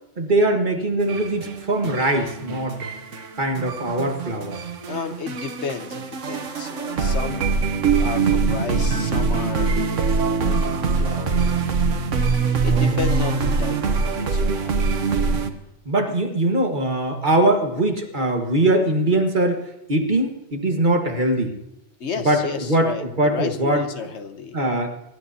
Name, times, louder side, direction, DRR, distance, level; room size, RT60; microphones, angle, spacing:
voice 1, 0.2-2.8 3.4-4.6 12.6-13.0 15.2-15.4 15.8-21.5 22.2-22.4 22.7-23.8 24.5-24.9, right 1 dB, 40° right, 3 dB, 1.6 m, -22 dB
sound 1, 1.0-15.5, right 4 dB, 90° right, 1.4 m, -23 dB
voice 2, 4.9-7.5 8.0-9.7 10.1-11.6 12.6-14.8 22.0-24.6, left 5 dB, 65° left, 8 dB, 1.2 m, -32 dB
24.5 x 13.0 x 2.8 m, 0.84 s
omnidirectional pair, 1.2 m